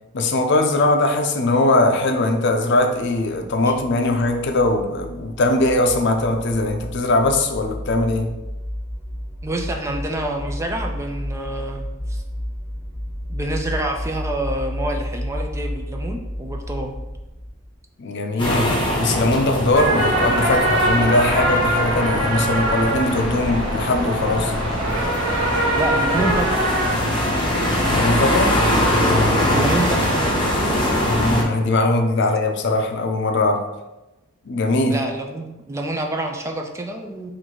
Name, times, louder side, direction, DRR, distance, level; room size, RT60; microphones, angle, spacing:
voice 1, 0.1-8.3 18.0-24.5 27.8-28.5 30.9-33.7 34.5-35.0, left 2 dB, 60° left, 5 dB, 0.5 m, -20 dB
sound 1, 3.0-17.7, equal, 30° right, 1.2 m, -32 dB
voice 2, 9.4-12.2 13.3-17.0 25.7-26.7 29.5-30.2 34.9-37.3, right 1 dB, 15° right, 3 dB, 0.3 m, -27 dB
sound 2, 18.4-31.4, left 1 dB, 25° left, 0.9 m, -22 dB
sound 3, 19.7-27.0, right 1 dB, 90° right, 1.1 m, -22 dB
3.9 x 2.6 x 4.5 m, 1.0 s
head